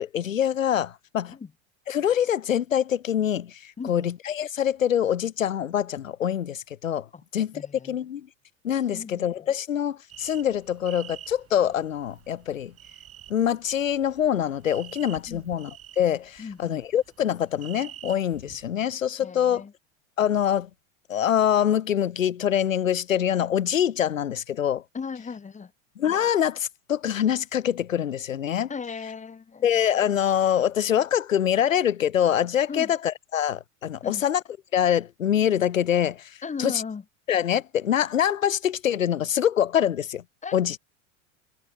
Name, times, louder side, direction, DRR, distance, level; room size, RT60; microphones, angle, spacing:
voice 1, 0.0-1.4 1.9-7.1 7.3-7.5 7.8-8.3 8.6-12.7 13.3-19.6 20.2-20.7 21.1-24.8 26.0-28.7 29.6-34.4 34.7-36.3 36.6-36.8 37.3-40.2 40.5-40.8, left 9 dB, 90° left, 1.2 m, -25 dB
voice 2, 3.8-4.1 7.1-7.2 7.5-8.0 8.9-9.3 15.3-15.5 16.4-16.8 19.2-19.7 24.9-25.7 28.7-29.7 32.7-32.9 34.0-34.2 36.4-37.0 40.4-40.5, left 5 dB, 20° left, 3.7 m, -36 dB
sound 1, 10.1-18.6, right 12 dB, 35° right, 4.9 m, -48 dB
hypercardioid pair, 95°, 38 cm